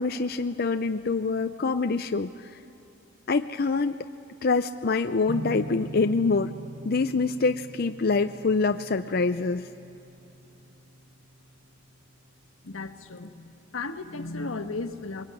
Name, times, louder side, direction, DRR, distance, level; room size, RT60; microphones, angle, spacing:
voice 1, 0.0-2.5 3.3-4.0 4.4-6.5 6.8-9.7, left 4 dB, 50° left, 8 dB, 0.5 m, -25 dB
sound 1, 5.3-12.5, right 2 dB, 45° right, 1.1 m, -42 dB
voice 2, 12.6-15.2, left 3 dB, 85° left, 8 dB, 1.4 m, -35 dB
22.5 x 22.5 x 9.6 m, 2.9 s
head